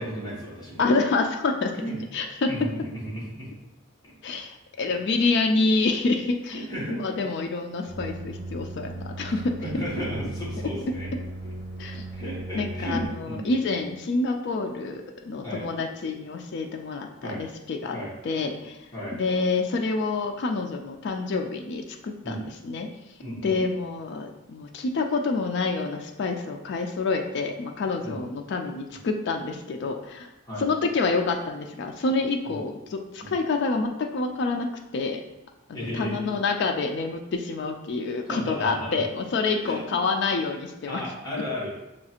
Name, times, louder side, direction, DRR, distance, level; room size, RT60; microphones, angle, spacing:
voice 1, 0.0-0.8 1.8-2.0 2.5-3.5 4.0-4.1 6.5-7.0 9.2-11.1 12.1-13.8 15.4-15.6 17.2-17.4 17.9-18.1 18.9-19.1 22.2-22.4 23.2-23.6 28.0-28.2 30.5-30.7 32.5-32.6 33.2-33.3 35.7-36.2 38.2-39.0 39.6-39.8 40.8-41.7, equal, 20° left, -8 dB, 1.2 m, -34 dB
voice 2, 0.8-1.7 2.1-2.5 4.2-6.6 7.0-9.5 11.8-12.1 12.5-18.0 18.2-18.9 19.1-22.4 22.6-22.9 23.4-30.3 30.6-34.7 34.9-35.2 35.7-41.0, left 3 dB, 55° left, 3 dB, 0.3 m, -27 dB
sound 1, 7.9-13.1, right 2 dB, 25° right, 0.6 m, -36 dB
6.3 x 2.4 x 2.8 m, 0.96 s
head